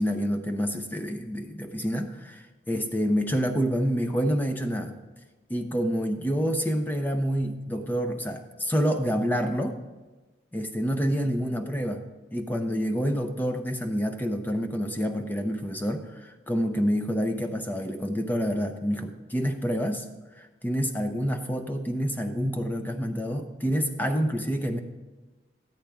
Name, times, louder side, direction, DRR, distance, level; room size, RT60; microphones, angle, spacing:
voice 1, 0.0-5.0 5.5-9.8 10.5-12.0 12.3-20.1 20.4-24.8, equal, 10° left, 4 dB, 0.6 m, -28 dB
13.5 x 10.0 x 3.5 m, 1.2 s
head